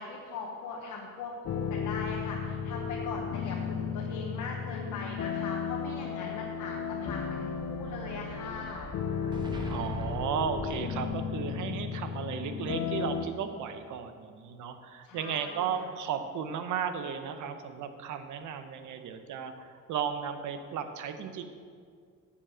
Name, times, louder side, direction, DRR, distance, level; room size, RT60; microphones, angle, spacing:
voice 1, 0.0-8.9 15.0-15.9, left 4 dB, 85° left, -2 dB, 1.2 m, -40 dB
sound 1, 1.4-13.3, left 6 dB, 60° left, 0.7 m, -34 dB
Explosion, 7.0-11.5, right 2 dB, 15° right, 1.3 m, -43 dB
voice 2, 9.7-21.4, right 7 dB, 80° right, 8 dB, 0.8 m, -35 dB
7.2 x 7.0 x 7.5 m, 2.1 s
cardioid pair, 90°, 30 cm